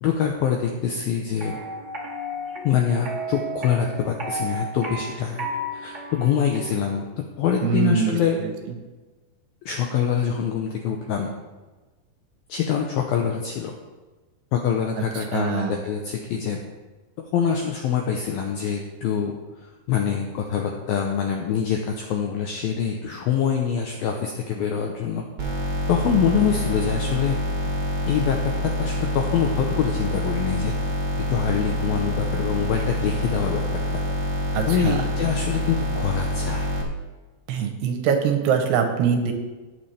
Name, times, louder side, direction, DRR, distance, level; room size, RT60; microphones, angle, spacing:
voice 1, 0.0-1.6 2.6-5.5 5.7-7.1 7.4-8.4 9.7-11.3 12.5-13.7 14.5-16.6 17.3-19.3 19.9-25.2 25.9-27.4 28.1-28.4 28.6-30.9 31.3-33.6 33.9-34.0 34.7-36.7, left 7 dB, 90° left, 2 dB, 2.1 m, -25 dB
sound 1, 1.4-7.0, right 1 dB, 60° right, 0.7 m, -33 dB
voice 2, 7.6-8.5 15.3-15.8 34.5-34.9 37.5-39.3, right 7 dB, 75° right, 5 dB, 2.8 m, -23 dB
sound 2, 25.4-36.8, left 1 dB, 40° right, 1.5 m, -26 dB
18.0 x 7.0 x 3.4 m, 1.2 s
omnidirectional pair, 5.3 m